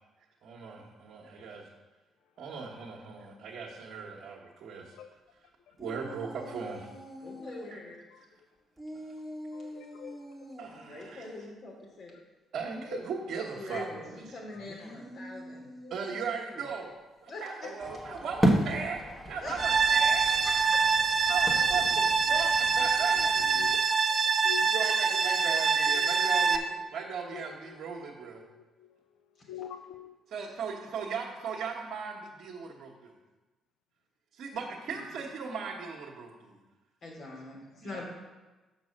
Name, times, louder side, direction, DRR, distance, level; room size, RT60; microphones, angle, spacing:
voice 1, 0.4-1.7 2.4-4.9 5.8-6.9 7.7-7.8 10.6-11.3 12.5-13.9 15.9-16.9 17.2-20.3 21.3-23.9 24.3-28.4 30.3-33.1 34.3-36.6 37.8-38.0, right 5 dB, 70° right, -5 dB, 1.3 m, -38 dB
voice 2, 5.7-6.1 8.1-8.3 9.5-10.2 12.9-13.0 14.5-14.6 15.8-16.2 17.6-17.8 21.3-21.4 23.1-23.8 24.1-24.9 25.9-26.6 27.3-28.1 28.4-28.9 29.5-30.2, left 10 dB, 80° left, 8 dB, 0.4 m, -45 dB
sound 1, 5.8-7.7 8.8-10.7 14.5-16.8, equal, 10° right, 1.4 m, -45 dB
voice 3, 7.2-7.9 10.7-12.1 13.5-15.7 17.3-17.4 18.1-18.2 19.4-19.6 20.4-20.8 34.9-35.0 37.0-38.0, left 2 dB, 60° left, -2 dB, 3.0 m, -43 dB
sound 2, 17.8-23.7, equal, 15° left, 1.5 m, -33 dB
sound 3, 19.6-26.6, right 5 dB, 45° right, 0.7 m, -25 dB
6.1 x 6.1 x 6.5 m, 1.2 s
supercardioid pair, 60°, 0 cm